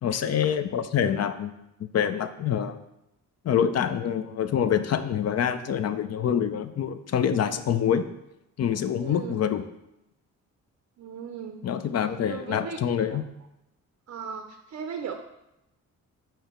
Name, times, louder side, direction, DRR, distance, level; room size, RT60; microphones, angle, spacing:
voice 1, 0.0-1.5 1.8-2.8 3.4-8.1 8.6-9.7 11.6-13.2, left 8 dB, 50° left, 11 dB, 0.5 m, -26 dB
voice 2, 9.0-9.5 11.0-11.6 12.3-12.8 14.1-15.1, right 7 dB, 50° right, 6 dB, 0.5 m, -37 dB
4.5 x 4.5 x 5.1 m, 0.88 s
cardioid pair, 95°, 33 cm